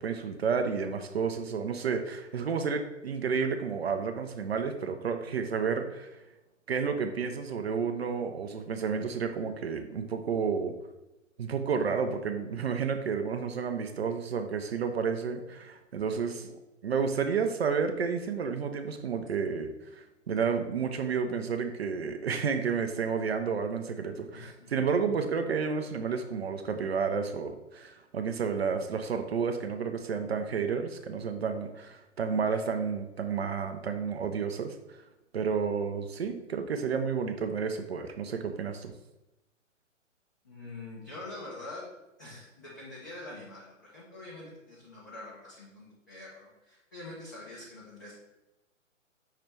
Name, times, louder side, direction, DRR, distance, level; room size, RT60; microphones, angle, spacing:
voice 1, 0.0-6.1 6.7-10.7 11.4-35.0 35.3-38.9, right 6 dB, 55° right, 7 dB, 0.5 m, -31 dB
voice 2, 24.3-24.7 40.4-41.8 42.2-48.1, left 2 dB, 15° left, -6 dB, 0.4 m, -45 dB
5.6 x 2.8 x 3.3 m, 0.99 s
figure-of-eight pair, 125°, 39 cm